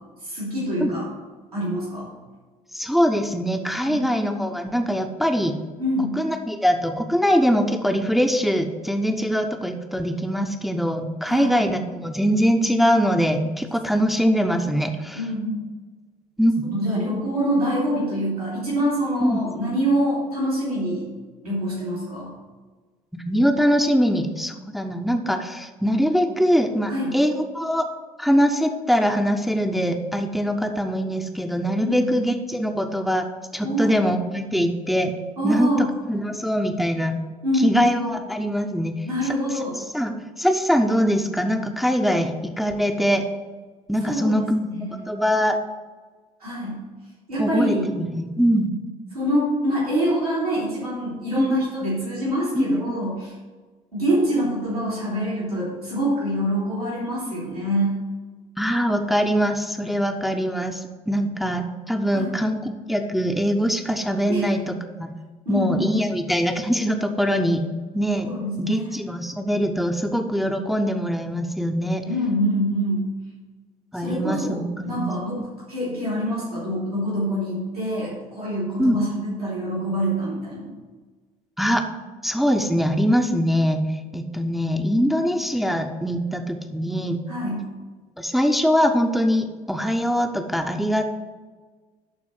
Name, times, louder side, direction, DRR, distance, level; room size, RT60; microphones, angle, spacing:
voice 1, 0.2-1.1 1.5-2.1 3.8-4.1 5.8-6.1 11.2-11.5 15.2-15.7 16.8-21.0 21.4-22.3 26.9-27.1 31.8-32.2 33.6-33.9 35.4-35.9 37.4-37.9 39.1-39.8 44.0-44.9 46.4-46.8 47.3-47.9 49.1-53.3 53.9-57.9 62.1-62.3 64.3-64.5 65.4-65.9 68.2-69.0 72.0-73.1 73.9-80.7 87.3-87.6, equal, 85° right, -8 dB, 3.0 m, -25 dB
voice 2, 2.7-5.6 6.2-15.2 16.4-16.7 19.2-19.4 23.1-27.9 28.2-33.3 33.5-35.1 35.4-37.2 37.6-38.9 39.9-43.2 43.9-44.6 44.9-45.6 47.4-48.8 51.3-51.5 52.5-53.0 58.6-62.6 62.9-65.1 65.5-67.6 67.9-68.3 68.6-72.0 73.9-75.1 78.8-79.0 81.6-81.8 82.2-87.2 88.2-91.0, equal, ahead, 4 dB, 0.9 m, -22 dB
11.5 x 4.2 x 6.4 m, 1.3 s
figure-of-eight pair, 55°, 19 cm